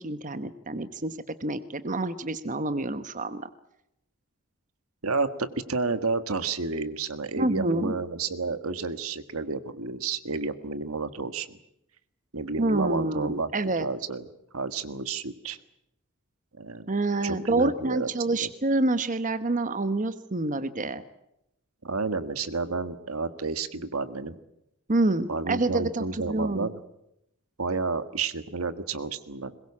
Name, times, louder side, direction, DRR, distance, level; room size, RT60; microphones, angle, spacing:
voice 1, 0.0-3.5 7.4-7.9 12.6-13.9 16.9-21.0 24.9-26.7, right 2 dB, 35° right, 11 dB, 1.1 m, -27 dB
voice 2, 5.0-11.6 12.3-13.5 13.8-14.2 14.5-15.6 16.6-16.9 17.2-18.5 21.8-24.3 25.3-26.7 27.6-29.5, right 4 dB, 75° right, 11 dB, 1.6 m, -31 dB
22.0 x 21.0 x 8.5 m, 0.81 s
head